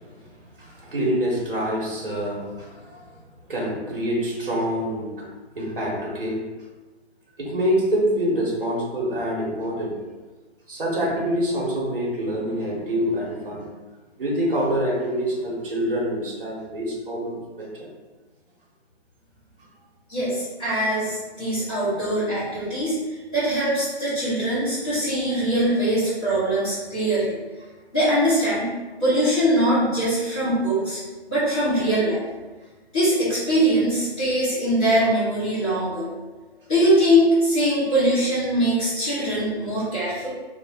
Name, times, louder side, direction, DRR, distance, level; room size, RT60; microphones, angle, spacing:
voice 1, 0.6-3.1 3.5-6.5 7.4-10.0 10.7-13.6 14.2-17.9, equal, 55° right, -4 dB, 1.3 m, -26 dB
voice 2, 20.1-27.4 27.9-28.7 29.0-31.0 31.3-32.2 32.9-36.1 36.7-40.3, equal, 5° left, -16 dB, 1.0 m, -22 dB
3.1 x 2.7 x 4.2 m, 1.3 s
hypercardioid pair, 175°, 32 cm